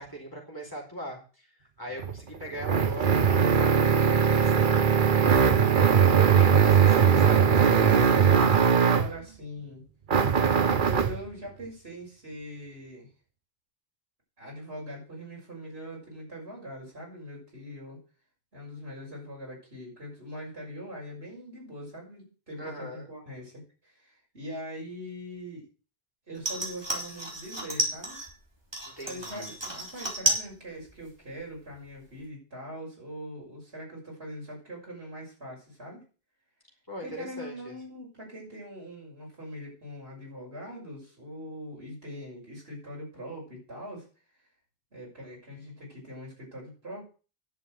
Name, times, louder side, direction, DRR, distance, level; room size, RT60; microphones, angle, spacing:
voice 1, 0.0-1.5 1.8-5.0 5.4-7.5 22.6-23.1 28.8-29.6 36.9-37.8, equal, 20° left, -1 dB, 4.7 m, -40 dB
sound 1, 2.0-9.2 10.1-11.2, right 7 dB, 55° right, 1.0 m, -20 dB
voice 2, 8.2-9.8 10.7-13.1 14.4-18.0 18.5-25.7 26.3-28.2 29.0-36.0 37.0-44.1 44.9-47.0, equal, 80° right, -3 dB, 6.5 m, -42 dB
sound 2, 26.4-28.3 28.7-30.5 30.8-31.4 31.7-31.8, right 1 dB, 25° right, 3.4 m, -31 dB
10.5 x 7.1 x 7.8 m, 0.37 s
omnidirectional pair, 1.0 m